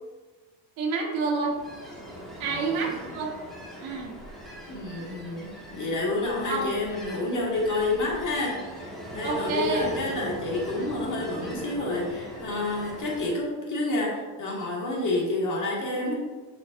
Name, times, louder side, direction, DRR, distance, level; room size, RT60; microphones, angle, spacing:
voice 1, 0.8-1.6 2.4-3.3 3.8-4.1 6.5-6.7 9.2-9.9, right 4 dB, 75° right, 1 dB, 1.3 m, -28 dB
Ocean, 1.3-13.5, equal, ahead, 1.3 m, -41 dB
voice 2, 2.5-3.1 4.7-16.1, left 2 dB, 40° left, -3 dB, 1.9 m, -29 dB
7.3 x 5.7 x 2.5 m, 1.3 s
cardioid pair, 150°, 48 cm